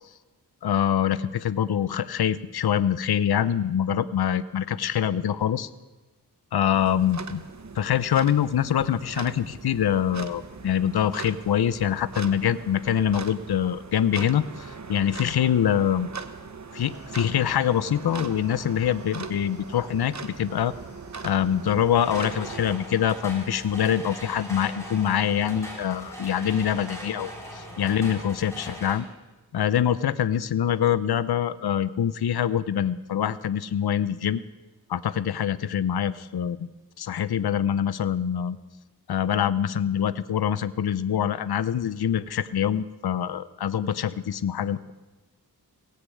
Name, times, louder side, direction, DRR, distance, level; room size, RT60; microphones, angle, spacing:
voice 1, 0.6-5.7 6.5-7.4 7.8-16.1 16.7-20.7 21.2-29.1 29.5-34.4 34.9-36.7 37.0-38.6 39.1-44.9, left 9 dB, 75° left, 15 dB, 0.6 m, -25 dB
sound 1, 6.7-22.8, right 4 dB, 45° right, 1.0 m, -40 dB
sound 2, 16.7-26.4, right 1 dB, 25° right, 3.2 m, -53 dB
sound 3, 22.0-29.0, equal, 5° left, 5.4 m, -40 dB
17.5 x 6.5 x 8.4 m, 1.2 s
wide cardioid pair, 50°, 39 cm